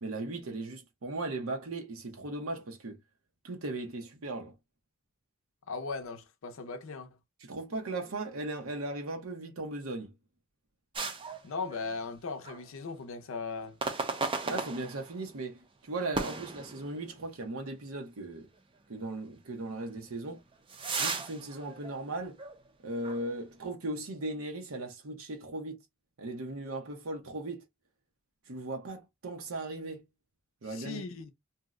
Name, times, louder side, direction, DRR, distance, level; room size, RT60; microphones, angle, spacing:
voice 1, 0.0-3.0 3.4-4.5 7.5-10.1 14.5-18.5 18.9-20.4 21.0-22.4 22.8-25.8 26.2-27.6 28.5-30.0 30.6-31.0, right 2 dB, 90° right, 0.7 m, -37 dB
voice 2, 5.7-7.1 11.4-13.8 30.6-31.3, left 4 dB, 70° left, 0.5 m, -38 dB
sound 1, 10.9-12.2 12.4-12.7 13.8-15.3 16.1-17.3 17.7-17.8 18.5-18.6 20.0-22.7 23.0-23.2, right 4 dB, 25° right, 0.5 m, -36 dB
2.7 x 2.0 x 3.5 m
head